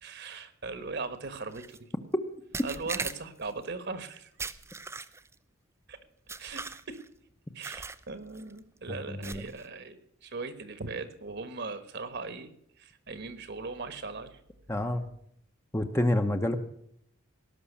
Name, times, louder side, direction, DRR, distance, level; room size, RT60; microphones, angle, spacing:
voice 1, 0.0-1.9 2.6-4.3 5.9-6.0 6.4-7.0 7.5-14.4, right 3 dB, 50° right, 11 dB, 1.3 m, -39 dB
sound 1, 1.5-1.8 2.5-3.5 4.4-5.3 6.3-7.1 7.6-8.0 8.3-8.6 9.2-9.7, right 4 dB, 10° right, 0.5 m, -39 dB
voice 2, 9.1-9.4 14.7-15.1 15.7-16.6, left 1 dB, 10° left, 6 dB, 0.8 m, -28 dB
18.5 x 6.1 x 8.5 m, 0.69 s
head